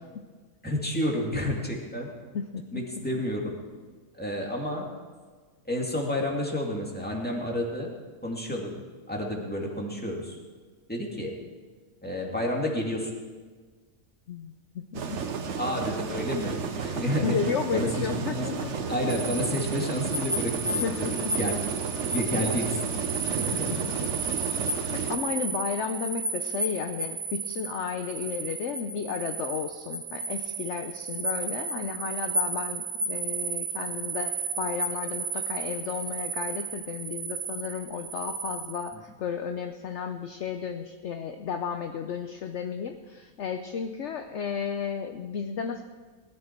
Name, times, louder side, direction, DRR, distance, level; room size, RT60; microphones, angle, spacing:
voice 1, 0.6-2.1 2.7-3.6 4.2-4.9 5.7-7.9 8.2-8.7 9.1-10.4 10.9-11.3 12.0-13.1 15.6-17.4 17.7-18.5 18.9-21.1 21.4-21.6 22.1-22.8 23.2-23.9 38.9-39.0, left 1 dB, 5° left, -1 dB, 2.2 m, -30 dB
voice 2, 2.3-3.0 14.3-15.0 17.2-18.7 20.8-21.3 22.3-22.4 23.5-23.9 24.5-24.6 24.9-45.8, left 7 dB, 60° left, 6 dB, 0.9 m, -33 dB
sound 1, 14.9-25.2, right 5 dB, 55° right, 1.2 m, -32 dB
sound 2, 19.1-38.9, right 4 dB, 90° right, 2.1 m, -33 dB
19.5 x 12.0 x 4.5 m, 1.5 s
omnidirectional pair, 1.5 m